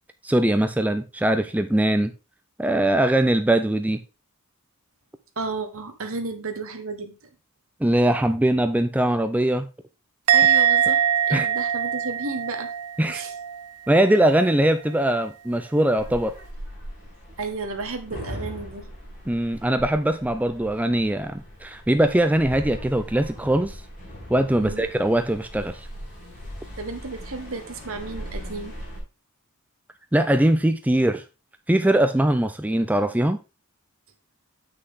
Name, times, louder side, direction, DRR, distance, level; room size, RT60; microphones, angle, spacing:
voice 1, 0.2-2.1 2.6-4.0 7.8-9.7 11.3-11.5 13.0-13.2 13.9-16.4 19.3-23.8 24.3-25.9 30.1-31.2 31.7-33.4, right 1 dB, 5° right, 0.4 m, -21 dB
voice 2, 5.4-7.1 10.3-12.7 13.1-13.3 17.4-18.9 24.6-24.8 26.8-28.8, right 3 dB, 65° right, 1.4 m, -33 dB
Musical instrument, 10.3-13.7 13.9-14.4, right 9 dB, 80° right, 0.5 m, -22 dB
sound 1, 16.0-29.0, equal, 40° left, 5.6 m, -39 dB
7.9 x 6.3 x 3.7 m
head